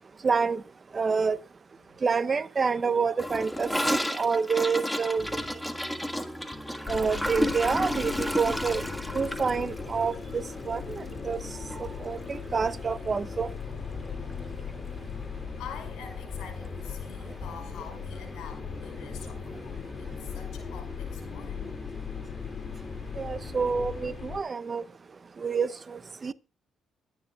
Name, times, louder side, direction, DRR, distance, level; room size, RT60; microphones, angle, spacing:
voice 1, 0.2-0.6 0.9-1.4 2.0-5.3 6.9-8.9 9.1-11.4 11.8-13.5 23.2-24.8 25.4-26.3, right 5 dB, 35° right, 0.7 m, -28 dB
Gurgling / Toilet flush, 3.2-11.5 11.7-11.9 12.1-12.6 12.9-13.0 13.2-13.3 14.3-14.4, equal, 5° left, 1.5 m, -32 dB
sound 1, 5.2-23.9, left 1 dB, 20° left, 2.2 m, -46 dB
sound 2, 6.9-24.4, left 6 dB, 45° left, 2.3 m, -39 dB
voice 2, 15.6-21.7, left 7 dB, 85° left, 5.4 m, -46 dB
24.5 x 9.9 x 2.3 m
cardioid pair, 90°, 0 cm